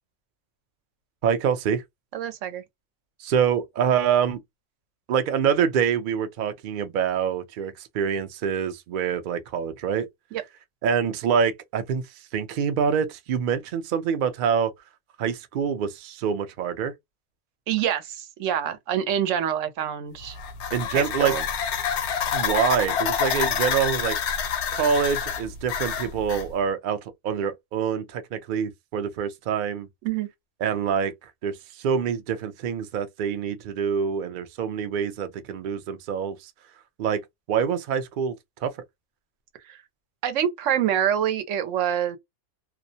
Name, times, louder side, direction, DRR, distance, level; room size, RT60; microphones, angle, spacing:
voice 1, 1.2-1.8 3.2-4.4 5.1-10.1 10.8-14.7 15.2-16.9 20.7-21.3 22.3-24.2 24.7-29.9 30.6-36.5 37.0-37.2 37.5-38.4 38.6-38.7, right 7 dB, 60° right, 0.5 m, -26 dB
voice 2, 2.1-2.6 10.3-10.4 17.7-20.4 20.9-21.4 30.0-30.3 39.7-39.8 40.2-42.2, right 10 dB, 90° right, 1.0 m, -26 dB
sound 1, 20.2-26.5, left 7 dB, 70° left, 0.8 m, -27 dB
2.4 x 2.0 x 2.6 m
omnidirectional pair, 1.3 m